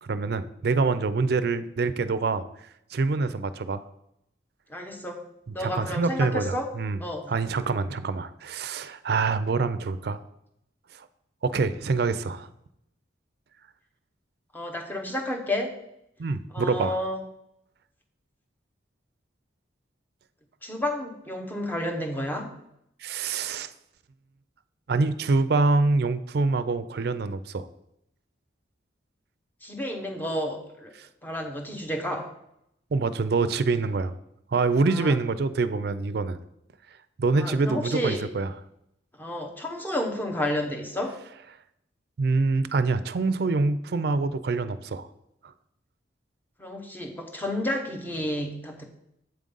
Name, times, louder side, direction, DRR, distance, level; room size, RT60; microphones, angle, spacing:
voice 1, 0.0-2.4 2.9-3.8 5.5-7.0 7.3-10.2 11.0-11.1 11.4-12.5 16.2-16.9 23.0-23.7 24.9-27.7 31.0-31.1 32.9-34.1 34.5-36.4 37.2-38.5 42.2-45.1 45.4-45.5, right 3 dB, 55° right, 13 dB, 0.4 m, -25 dB
voice 2, 4.7-5.2 5.5-6.7 7.0-7.3 14.5-15.7 16.5-17.2 20.6-22.5 29.6-30.9 31.2-32.3 34.9-35.1 37.3-38.2 39.2-41.2 46.6-48.8, left 1 dB, 10° left, 2 dB, 0.7 m, -31 dB
7.8 x 3.7 x 5.3 m, 0.79 s
head